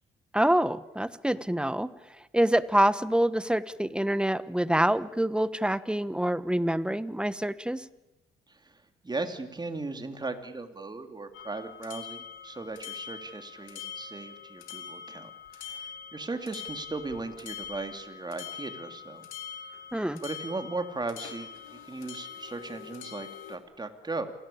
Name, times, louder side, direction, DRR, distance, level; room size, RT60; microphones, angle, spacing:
voice 1, 0.3-1.9 2.3-7.8 19.9-20.2, right 1 dB, 5° right, 15 dB, 1.1 m, -26 dB
voice 2, 8.5-19.3 19.7-19.8 20.2-24.3, right 3 dB, 20° right, 7 dB, 2.9 m, -37 dB
sound 1, 11.3-23.6, left 8 dB, 85° left, 2.8 m, -43 dB
27.5 x 17.5 x 8.6 m, 1.0 s
cardioid pair, 90°, 20 cm